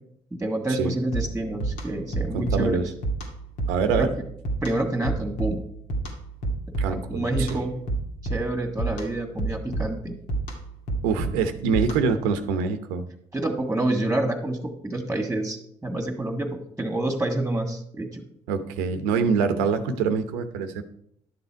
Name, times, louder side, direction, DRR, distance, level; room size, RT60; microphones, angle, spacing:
voice 1, 0.4-2.8 3.9-4.1 4.6-5.6 6.9-7.8 8.2-10.1 13.3-18.2, right 1 dB, 10° right, 2 dB, 1.9 m, -28 dB
sound 1, 1.1-12.3, right 2 dB, 75° left, 2.1 m, -31 dB
voice 2, 2.3-2.8 3.7-4.1 6.8-7.6 11.0-13.0 18.5-20.8, right 5 dB, 90° right, 9 dB, 0.9 m, -25 dB
11.5 x 6.8 x 4.6 m, 0.71 s
supercardioid pair, 65°, 14 cm